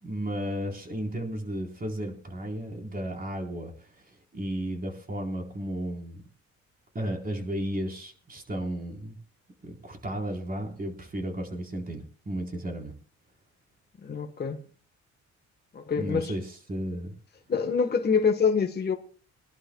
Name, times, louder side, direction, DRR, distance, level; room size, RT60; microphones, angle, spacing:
voice 1, 0.0-6.2 6.9-9.2 9.6-12.9 16.0-17.1, right 1 dB, 30° right, 3.9 m, -34 dB
voice 2, 14.0-14.6 15.7-16.3 17.5-18.9, left 5 dB, 35° left, 1.3 m, -25 dB
24.0 x 11.5 x 2.3 m
cardioid pair, 90°, 30 cm